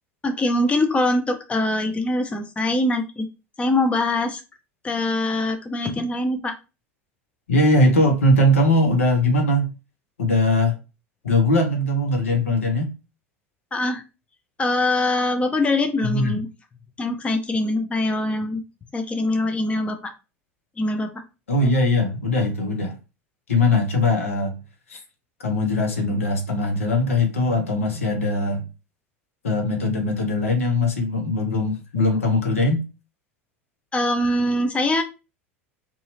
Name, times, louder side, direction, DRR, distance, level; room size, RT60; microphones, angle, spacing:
voice 1, 0.2-3.3 3.6-4.4 4.8-6.5 13.7-14.0 14.6-16.5 17.0-18.6 18.9-20.1 20.8-21.1 33.9-35.0, left 2 dB, 15° left, 7 dB, 0.5 m, -23 dB
voice 2, 7.5-9.7 10.2-10.8 11.2-12.9 16.0-16.4 21.5-22.9 23.5-24.6 24.9-25.0 25.4-28.7 29.4-32.8, left 1 dB, 80° left, 2 dB, 0.9 m, -20 dB
2.7 x 2.3 x 2.7 m, 0.29 s
figure-of-eight pair, 80°, 7 cm